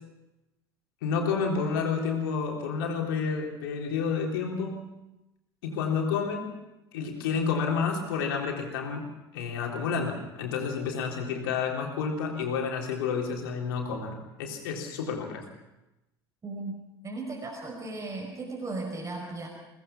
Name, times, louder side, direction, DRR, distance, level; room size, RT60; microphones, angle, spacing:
voice 1, 1.0-4.9 5.6-6.5 6.9-9.0 9.3-15.5, left 5 dB, 65° left, 1 dB, 3.7 m, -30 dB
voice 2, 16.4-19.5, right 2 dB, 25° right, 0 dB, 5.4 m, -36 dB
22.5 x 19.0 x 6.0 m, 0.96 s
figure-of-eight pair, 65°, 13 cm